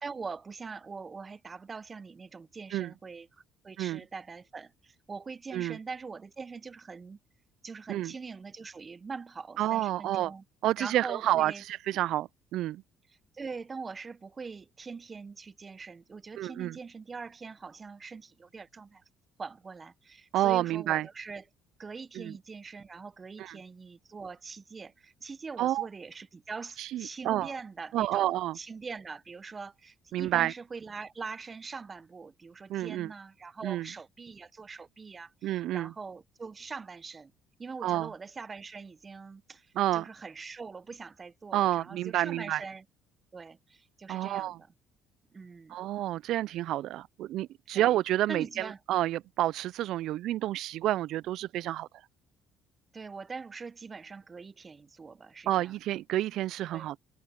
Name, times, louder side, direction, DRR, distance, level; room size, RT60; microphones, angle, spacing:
voice 1, 0.0-3.3 3.6-7.2 7.6-10.4 10.8-11.6 13.1-19.0 19.4-21.4 21.8-28.3 28.5-37.3 37.6-42.8 43.3-44.6 45.3-45.8 47.7-48.0 48.3-48.8 52.9-55.8 56.7-56.9, right 4 dB, 30° right, 0.9 m, -43 dB
voice 2, 9.6-10.3 10.6-12.8 16.4-16.8 20.3-21.1 22.2-22.3 23.4-23.6 25.6-25.9 26.8-27.5 27.9-28.5 30.1-30.5 32.7-33.1 33.6-33.9 35.4-35.9 37.8-38.1 39.8-40.1 41.5-42.6 44.1-44.6 45.7-51.9 55.5-57.0, right 14 dB, 70° right, 0.3 m, -29 dB
supercardioid pair, 75°, 0 cm